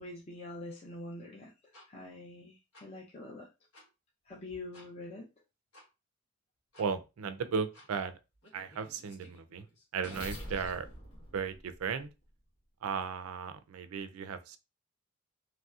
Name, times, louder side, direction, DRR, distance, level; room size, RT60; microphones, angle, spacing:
voice 1, 0.0-1.5 1.9-3.5 4.3-5.3, left 2 dB, 30° left, 0.5 m, -45 dB
sound 1, 1.7-1.9 2.7-2.8 3.7-3.9 4.7-4.9 5.7-5.9 6.7-6.9 7.7-7.9 8.4-12.3, equal, 90° left, 1.3 m, -48 dB
voice 2, 6.8-8.2 8.5-9.7 9.9-10.9 11.3-12.1 12.8-14.6, right 6 dB, 85° right, 0.4 m, -35 dB
3.0 x 2.6 x 2.3 m
head